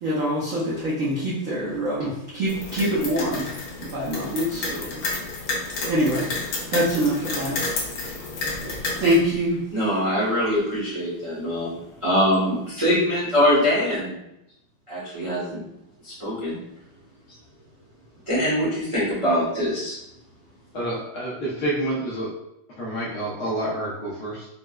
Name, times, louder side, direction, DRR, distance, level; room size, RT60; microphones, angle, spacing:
voice 1, 0.0-3.5 3.8-5.0 5.9-6.3 6.7-7.6 8.1-8.2 8.5-9.6, equal, 75° right, -7 dB, 0.7 m, -25 dB
sound 1, 2.5-9.1, left 3 dB, 85° left, 1.7 m, -31 dB
voice 2, 9.7-11.7 12.0-14.1 14.9-15.6 16.0-16.6 18.3-20.0, equal, 30° right, -9 dB, 0.5 m, -23 dB
voice 3, 20.7-22.3 22.8-24.5, right 1 dB, 65° left, -6 dB, 1.1 m, -28 dB
4.5 x 2.1 x 2.2 m, 0.85 s
omnidirectional pair, 2.3 m